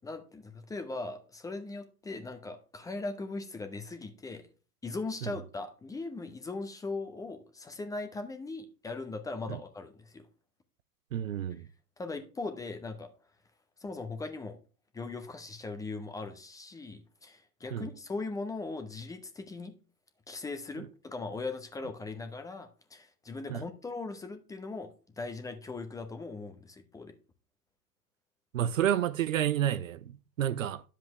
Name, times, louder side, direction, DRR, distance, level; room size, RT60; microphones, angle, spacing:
voice 1, 0.0-4.5 4.8-10.3 11.5-11.6 12.0-13.1 13.8-14.6 14.9-19.7 20.3-24.9 25.2-27.1, left 3 dB, 5° left, 0.8 m, -39 dB
voice 2, 11.1-11.6 17.7-17.9 20.8-20.9 23.5-23.6 28.5-30.8, right 11 dB, 55° right, 0.7 m, -30 dB
10.5 x 7.4 x 3.1 m
figure-of-eight pair, 105°, 47 cm